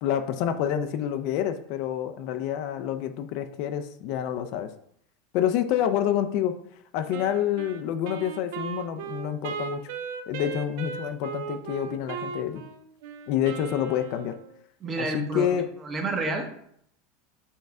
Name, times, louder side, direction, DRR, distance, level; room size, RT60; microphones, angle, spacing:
voice 1, 0.0-4.7 5.3-6.6 6.9-9.9 10.3-12.6 13.3-14.4 15.0-15.7, left 10 dB, 55° left, 9 dB, 0.3 m, -28 dB
Wind instrument woodwind instrument, 7.1-14.6, right 7 dB, 70° right, 0.4 m, -37 dB
voice 2, 14.8-15.5 15.8-16.6, right 2 dB, 25° right, 4 dB, 0.8 m, -29 dB
5.4 x 2.2 x 3.6 m, 0.68 s
supercardioid pair, 135°, 0 cm